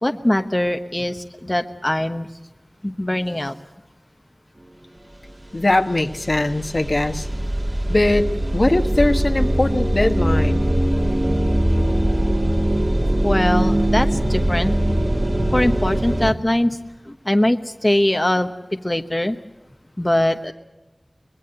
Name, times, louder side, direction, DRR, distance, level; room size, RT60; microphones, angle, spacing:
voice 1, 0.0-2.3 2.8-3.5 13.2-14.7 15.5-16.8 17.1-18.5 18.8-19.4 20.0-20.5, left 1 dB, 25° left, 6 dB, 1.0 m, -21 dB
sound 1, 5.3-5.4 5.6-16.3, right 1 dB, 45° right, 2.4 m, -21 dB
voice 2, 5.5-7.3 7.9-10.7, left 2 dB, 55° left, 6 dB, 1.4 m, -20 dB
24.0 x 20.5 x 7.9 m, 1.1 s
wide cardioid pair, 40°, 0 cm